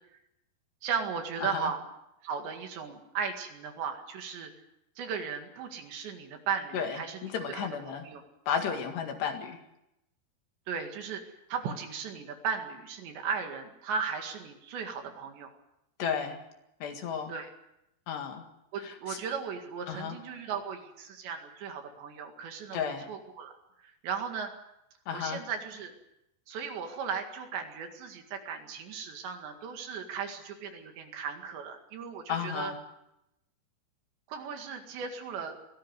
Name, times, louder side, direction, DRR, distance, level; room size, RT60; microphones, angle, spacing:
voice 1, 0.8-1.8 2.2-4.5 5.0-8.2 10.7-15.5 17.3-17.5 18.7-23.6 23.8-24.5 25.1-25.9 26.5-32.7 34.3-35.6, right 6 dB, 65° right, 5 dB, 4.0 m, -36 dB
voice 2, 1.4-1.7 6.7-8.1 8.5-9.6 16.0-16.4 16.8-17.3 18.1-18.5 18.8-19.2 19.9-20.2 22.7-23.1 25.1-25.4 32.3-32.8, left 7 dB, 65° left, 5 dB, 3.7 m, -33 dB
24.0 x 17.5 x 8.0 m, 0.86 s
omnidirectional pair, 5.7 m